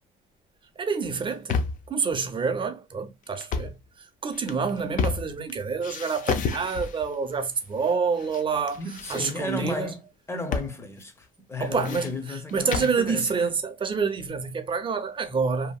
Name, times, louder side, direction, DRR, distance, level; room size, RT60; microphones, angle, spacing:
voice 1, 0.8-8.8 9.1-9.9 11.6-15.8, right 5 dB, 30° right, 0.6 m, -28 dB
sound 1, 1.1-1.9 3.4-3.8 4.3-5.5 5.8-7.1 7.8-8.4 8.7-9.7 10.5-10.8 11.0-11.1 11.5-13.0, left 5 dB, 50° left, 0.5 m, -31 dB
voice 2, 8.8-10.0 10.3-13.5, left 3 dB, 15° left, 0.8 m, -34 dB
2.8 x 2.5 x 2.3 m
cardioid pair, 110°, 17 cm